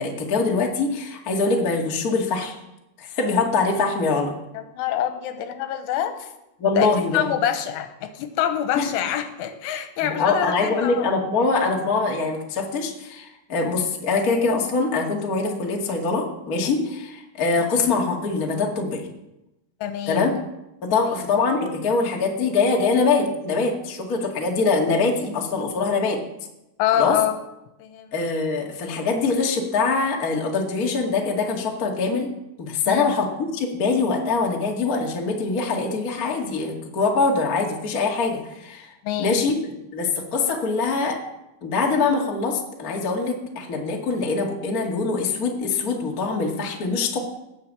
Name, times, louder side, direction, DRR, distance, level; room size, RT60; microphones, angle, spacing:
voice 1, 0.0-2.5 3.0-4.3 6.6-7.2 8.7-8.9 10.0-19.1 20.1-20.4 20.8-26.2 26.9-27.2 28.1-32.3 32.6-38.9 39.2-39.5 39.9-41.2 41.6-47.2, left 4 dB, 50° left, 0 dB, 1.0 m, -23 dB
voice 2, 4.6-6.3 6.8-11.1 19.8-20.4 20.9-21.1 26.8-27.4 27.8-28.1 32.9-33.2 39.0-39.4, left 10 dB, 90° left, 8 dB, 3.5 m, -26 dB
18.5 x 6.6 x 7.6 m, 0.92 s
omnidirectional pair, 5.5 m